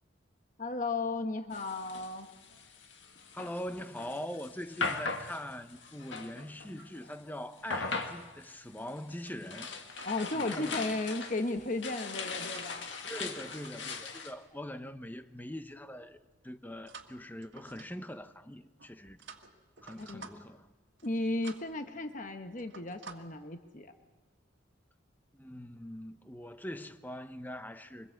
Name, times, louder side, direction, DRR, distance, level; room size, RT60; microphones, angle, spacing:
voice 1, 0.6-2.3 10.0-12.9 20.0-20.3 21.0-23.9, left 2 dB, 45° left, 1.1 m, -35 dB
sound 1, 1.5-7.2 7.6-14.3, left 4 dB, 75° left, 1.8 m, -40 dB
voice 2, 3.3-9.7 10.3-11.0 13.0-16.2 16.4-19.2 19.8-20.7 25.3-28.1, left 1 dB, 10° left, 0.9 m, -42 dB
sound 2, 9.0-10.4 11.3-11.7 12.2-14.0 14.3-14.6 16.9-18.2 18.8-20.6 20.9-21.2 21.4-21.8 22.1-22.3 22.6-23.2, right 5 dB, 70° right, 1.7 m, -52 dB
24.0 x 21.0 x 7.7 m
head